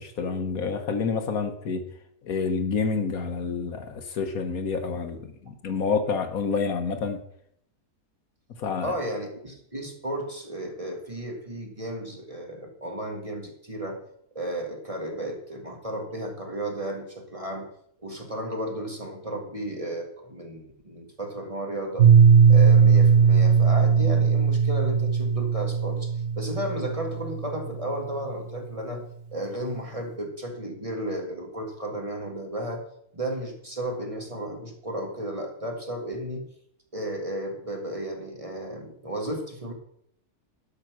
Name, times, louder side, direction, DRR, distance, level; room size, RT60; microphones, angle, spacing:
voice 1, 0.0-1.8 2.2-7.2 8.6-8.9, left 5 dB, 70° left, 8 dB, 1.5 m, -28 dB
voice 2, 8.8-14.0 14.3-17.7 18.0-22.1 22.5-29.0 29.3-32.8 33.1-36.5 36.9-39.7, right 1 dB, 20° right, 2 dB, 1.9 m, -33 dB
Piano, 22.0-27.6, right 6 dB, 55° right, 1.0 m, -18 dB
11.5 x 6.4 x 6.2 m, 0.71 s
omnidirectional pair, 1.6 m